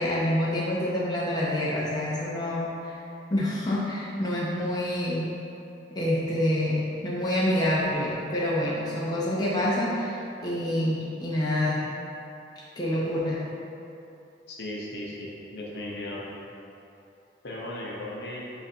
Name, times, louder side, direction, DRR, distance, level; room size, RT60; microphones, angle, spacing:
voice 1, 0.0-3.0 3.3-5.3 5.9-11.8 12.8-13.4, left 1 dB, 20° left, -7 dB, 0.5 m, -27 dB
voice 2, 14.5-16.4 17.4-18.4, left 1 dB, 65° left, -4 dB, 0.7 m, -36 dB
6.3 x 2.5 x 2.7 m, 2.7 s
head